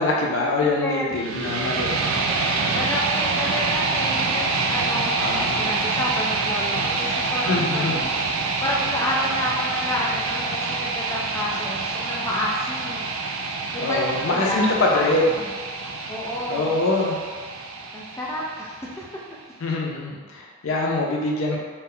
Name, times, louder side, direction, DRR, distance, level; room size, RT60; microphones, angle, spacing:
voice 1, 0.0-1.9 5.2-5.8 7.5-8.1 13.8-15.3 16.5-17.2 19.6-21.6, left 2 dB, 85° left, -2 dB, 0.6 m, -24 dB
voice 2, 0.6-1.3 2.7-5.2 5.6-8.2 8.6-13.1 13.7-15.4 16.1-16.7 17.9-19.0, left 1 dB, 15° left, -4 dB, 0.3 m, -30 dB
sound 1, 1.1-19.2, right 3 dB, 85° right, 0.4 m, -26 dB
2.8 x 2.1 x 3.6 m, 1.5 s
head